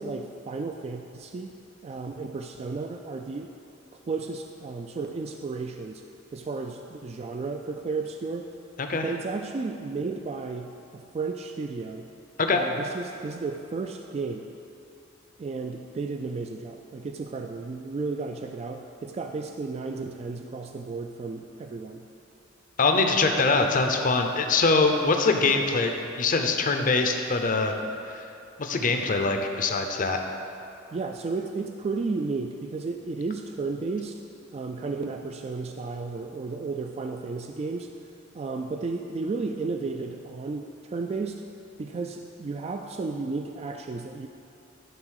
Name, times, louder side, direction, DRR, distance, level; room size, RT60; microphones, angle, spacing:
voice 1, 0.0-1.5 1.8-3.5 4.1-6.0 6.3-8.5 9.0-12.1 12.5-14.5 15.4-22.0 30.9-34.2 34.5-37.9 38.3-41.4 41.8-44.3, right 4 dB, 30° right, 4 dB, 0.3 m, -33 dB
voice 2, 22.8-27.7 28.6-30.2, left 3 dB, 40° left, 4 dB, 0.6 m, -23 dB
11.0 x 3.9 x 6.4 m, 2.7 s
head